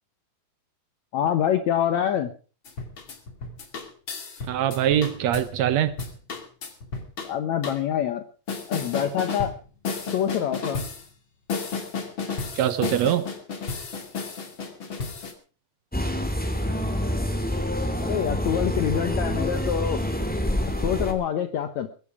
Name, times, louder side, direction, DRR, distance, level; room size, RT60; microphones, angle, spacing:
voice 1, 1.1-2.3 7.2-8.3 8.7-9.5 10.1-10.8 18.0-20.0 20.8-21.9, left 9 dB, 65° left, 9 dB, 2.0 m, -25 dB
sound 1, 2.6-5.5 5.9-7.3 7.6-7.8 8.5-9.6 9.8-11.0 11.5-15.3, left 4 dB, 35° left, 2.9 m, -32 dB
voice 2, 4.5-5.9 12.5-13.3, right 10 dB, 75° right, 14 dB, 1.7 m, -23 dB
sound 2, 15.9-21.1, equal, 5° left, 1.9 m, -27 dB
22.0 x 10.5 x 4.8 m, 0.38 s
omnidirectional pair, 4.0 m